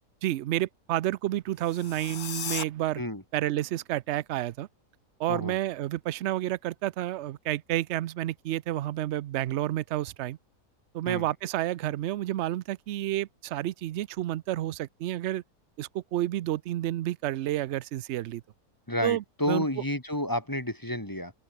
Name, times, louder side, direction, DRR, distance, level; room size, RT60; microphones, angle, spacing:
voice 1, 0.2-3.0 3.3-4.7 5.2-10.4 10.9-15.4 15.8-18.4 19.0-19.7, right 14 dB, 70° right, 0.6 m, -30 dB
sound 1, 1.6-2.6, left 8 dB, 65° left, 1.8 m, -36 dB
voice 2, 18.9-21.3, left 1 dB, 10° left, 2.3 m, -30 dB
open air
omnidirectional pair, 1.7 m